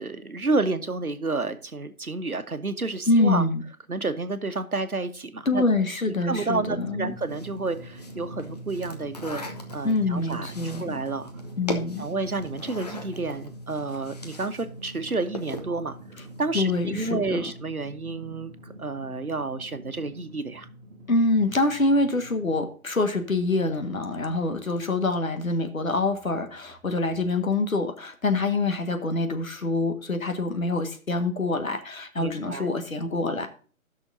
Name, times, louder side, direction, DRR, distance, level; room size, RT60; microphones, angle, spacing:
voice 1, 0.0-3.4 3.9-5.6 6.2-9.4 9.7-11.3 12.0-16.0 16.4-18.5 18.8-20.7 32.2-32.7, right 3 dB, 90° right, 10 dB, 1.2 m, -30 dB
voice 2, 3.1-3.6 5.4-7.1 9.8-10.8 11.6-12.0 16.5-17.4 21.1-33.5, left 2 dB, 70° left, 7 dB, 1.7 m, -25 dB
Drum, 6.5-22.6, right 1 dB, 35° right, 1.5 m, -43 dB
sound 1, 7.3-14.6 14.9-15.8, left 2 dB, 30° left, 0.9 m, -39 dB
15.5 x 6.2 x 2.6 m, 0.40 s
figure-of-eight pair, 150°, 42 cm